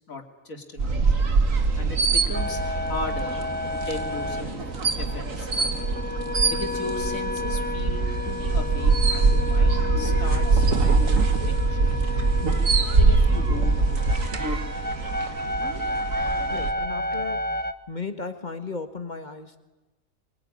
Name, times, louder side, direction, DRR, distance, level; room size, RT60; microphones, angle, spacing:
voice 1, 0.1-1.1 1.8-3.4 3.9-4.6 5.0-5.9 6.5-12.0 12.8-14.2, left 2 dB, 85° left, 4 dB, 3.4 m, -37 dB
sound 1, 0.8-16.7, right 4 dB, 75° right, 2.2 m, -23 dB
sound 2, 2.3-17.7, left 2 dB, 10° left, 0.9 m, -32 dB
voice 2, 16.5-19.6, left 4 dB, 35° left, 8 dB, 1.9 m, -36 dB
24.0 x 23.5 x 9.9 m, 1.1 s
omnidirectional pair, 1.4 m